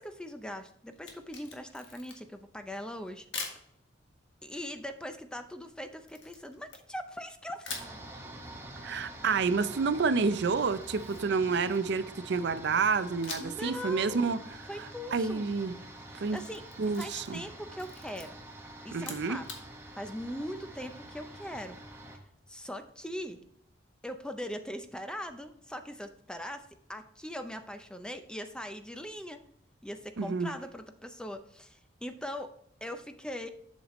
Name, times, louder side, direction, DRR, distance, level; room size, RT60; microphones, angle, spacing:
voice 1, 0.0-3.3 4.4-7.9 13.4-14.4 14.7-15.5 16.1-16.6 17.0-18.4 18.8-19.5 20.0-21.8 22.5-23.4 24.0-29.4 29.8-32.5 32.8-33.5, equal, 5° left, 0.5 m, -41 dB
Camera, 0.9-2.4 3.3-3.6 6.1-7.2 7.6-8.0 10.6-12.1 13.2-13.7 14.0-14.1 16.1-17.5 17.8-18.3 18.9-19.6, left 5 dB, 75° left, 1.6 m, -43 dB
sound 1, 7.7-22.2, right 1 dB, 15° right, 1.1 m, -47 dB
voice 2, 8.8-14.4 15.1-15.8 16.2-16.4 16.8-17.4 18.9-19.4 30.2-30.5, right 4 dB, 60° right, 0.5 m, -29 dB
7.9 x 6.5 x 3.1 m
head